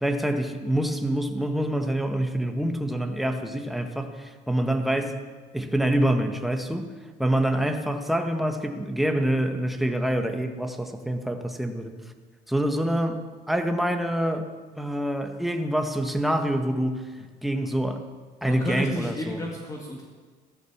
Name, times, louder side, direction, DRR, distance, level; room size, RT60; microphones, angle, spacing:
voice 1, 0.0-5.2 5.5-6.9 7.2-11.9 12.5-13.2 13.5-14.5 14.8-17.1 17.4-18.1 18.4-19.4, right 1 dB, ahead, 5 dB, 1.5 m, -26 dB
voice 2, 18.4-20.0, equal, 20° left, 0 dB, 2.0 m, -31 dB
15.0 x 13.0 x 7.3 m, 1.5 s
cardioid pair, 130°, 18 cm